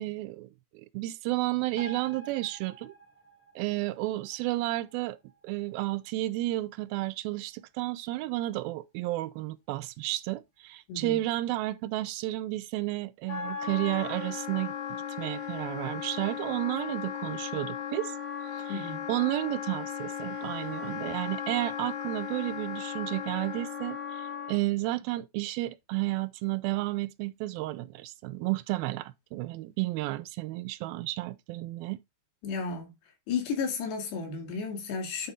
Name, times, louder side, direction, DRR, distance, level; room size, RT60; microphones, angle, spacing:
voice 1, 0.0-2.9 3.6-5.2 5.4-18.1 18.5-32.0, right 18 dB, 85° right, 2.2 m, -32 dB
sound 1, 1.8-8.7 9.1-9.2, right 3 dB, 15° left, 1.6 m, -51 dB
Wind instrument woodwind instrument, 13.3-24.6, left 8 dB, 55° left, 2.6 m, -36 dB
voice 2, 18.7-19.0 32.4-32.9 33.3-35.3, left 5 dB, 90° left, 4.4 m, -33 dB
10.5 x 4.3 x 3.6 m
omnidirectional pair, 4.7 m